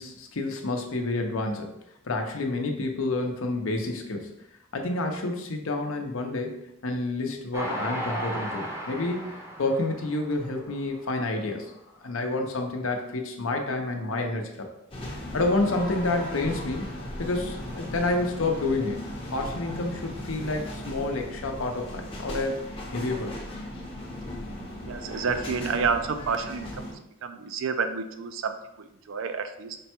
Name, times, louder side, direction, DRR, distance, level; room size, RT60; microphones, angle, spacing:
voice 1, 0.0-1.7 2.0-4.3 4.7-11.7 12.0-14.7 15.3-16.9 17.2-19.0 19.3-23.4, left 2 dB, 75° left, 3 dB, 0.7 m, -29 dB
Train, 7.5-11.0 11.5-11.6 11.9-12.0, equal, 15° right, 0.6 m, -35 dB
sound 1, 14.9-26.9, left 1 dB, 25° left, 0.7 m, -37 dB
voice 2, 24.8-26.9 27.2-29.8, right 5 dB, 70° right, 8 dB, 0.4 m, -29 dB
5.2 x 2.2 x 4.3 m, 0.83 s
head